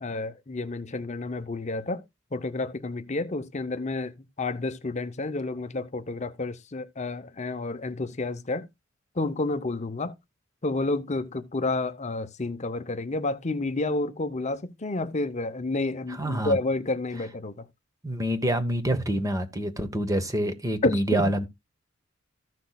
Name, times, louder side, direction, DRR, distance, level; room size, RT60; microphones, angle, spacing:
voice 1, 0.0-2.0 2.3-8.7 9.2-10.1 10.6-17.6 20.8-21.3, left 2 dB, 35° left, 0.7 m, -30 dB
voice 2, 16.2-16.6 18.0-21.4, right 1 dB, 15° right, 1.0 m, -26 dB
14.5 x 6.1 x 2.3 m
head